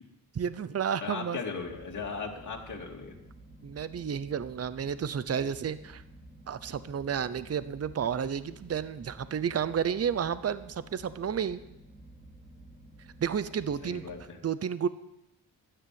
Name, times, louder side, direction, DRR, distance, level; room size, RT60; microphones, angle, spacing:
voice 1, 0.3-1.4 3.6-6.0 6.5-11.6 13.2-14.1 14.4-14.9, right 7 dB, 40° right, 15 dB, 0.8 m, -31 dB
voice 2, 1.0-3.2 13.8-14.4, left 5 dB, 50° left, -1 dB, 2.8 m, -37 dB
sound 1, 1.6-14.3, right 1 dB, 20° right, 2.8 m, -52 dB
12.5 x 10.0 x 7.7 m, 0.87 s
cardioid pair, 80°, 39 cm